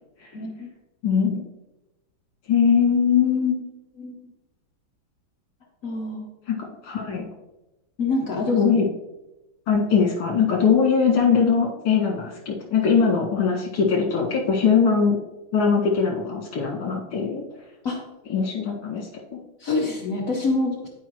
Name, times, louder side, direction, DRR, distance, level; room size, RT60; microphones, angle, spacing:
voice 1, 0.3-0.7 4.0-4.2 5.8-6.3 8.0-8.6 17.8-18.0 19.6-20.9, left 3 dB, 55° left, 0 dB, 1.0 m, -26 dB
voice 2, 1.0-1.4 2.5-3.6 6.5-7.3 8.5-8.9 9.7-15.2 15.5-17.4 18.3-19.4, left 6 dB, 80° left, -2 dB, 2.7 m, -21 dB
11.5 x 4.9 x 3.1 m, 0.99 s
omnidirectional pair, 2.3 m